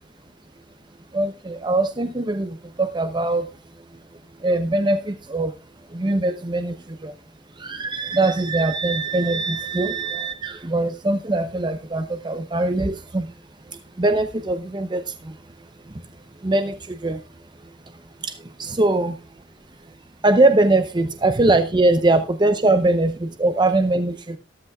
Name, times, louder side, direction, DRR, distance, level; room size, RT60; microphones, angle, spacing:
voice 1, 1.1-3.5 4.4-5.5 5.9-7.1 7.6-13.3 14.0-15.4 16.4-17.2 18.2-19.2 20.2-24.4, right 2 dB, 25° right, 0.6 m, -22 dB
14.0 x 12.5 x 2.3 m
head